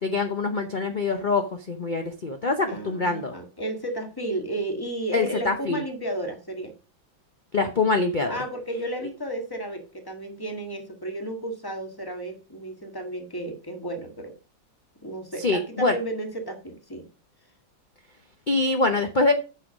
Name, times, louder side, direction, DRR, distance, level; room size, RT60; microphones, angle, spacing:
voice 1, 0.0-3.3 5.1-5.8 7.5-8.4 15.4-16.0 18.5-19.3, left 3 dB, 75° left, 6 dB, 0.4 m, -24 dB
voice 2, 2.7-6.7 8.3-14.3 15.0-17.1, right 1 dB, 10° left, 4 dB, 1.5 m, -33 dB
8.2 x 5.7 x 5.1 m, 0.34 s
omnidirectional pair, 2.2 m